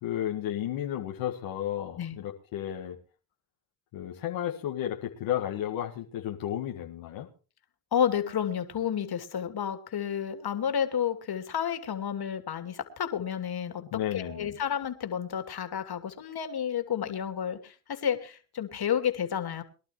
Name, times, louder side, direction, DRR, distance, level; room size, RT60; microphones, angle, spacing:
voice 1, 0.0-3.0 3.9-7.3 13.8-14.6, left 11 dB, 80° left, 0 dB, 1.9 m, -33 dB
voice 2, 7.9-19.6, left 8 dB, 55° left, 7 dB, 2.9 m, -31 dB
23.5 x 12.0 x 3.1 m, 0.36 s
supercardioid pair, 60°, 46 cm